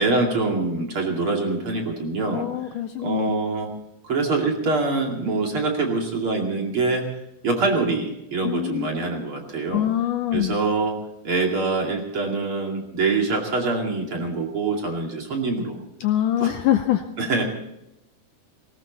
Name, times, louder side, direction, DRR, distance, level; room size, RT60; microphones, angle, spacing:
voice 1, 0.0-2.5 3.0-3.7 4.0-7.1 7.4-9.9 10.3-11.0 11.2-15.8 16.4-16.6 17.2-17.4, right 3 dB, 40° right, 0 dB, 2.9 m, -24 dB
voice 2, 2.3-3.3 8.4-8.9 9.7-10.6 16.0-17.0, left 12 dB, 75° left, 8 dB, 2.0 m, -24 dB
19.5 x 18.0 x 4.0 m, 0.86 s
omnidirectional pair, 4.3 m